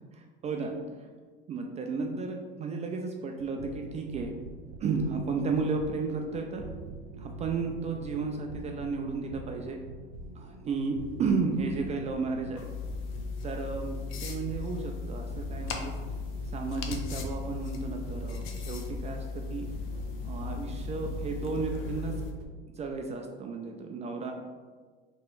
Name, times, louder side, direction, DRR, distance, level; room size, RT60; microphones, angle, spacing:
voice 1, 0.2-1.1 1.5-4.3 4.8-6.6 7.2-9.8 10.3-12.7 13.4-15.9 16.5-19.6 20.2-22.1 22.7-24.3, right 4 dB, 25° right, 3 dB, 0.3 m, -33 dB
sound 1, 3.4-22.5, right 2 dB, 75° right, 0.7 m, -44 dB
sound 2, 12.6-22.3, left 4 dB, 45° left, 0.6 m, -37 dB
3.1 x 2.9 x 4.5 m, 1.5 s
supercardioid pair, 110°, 29 cm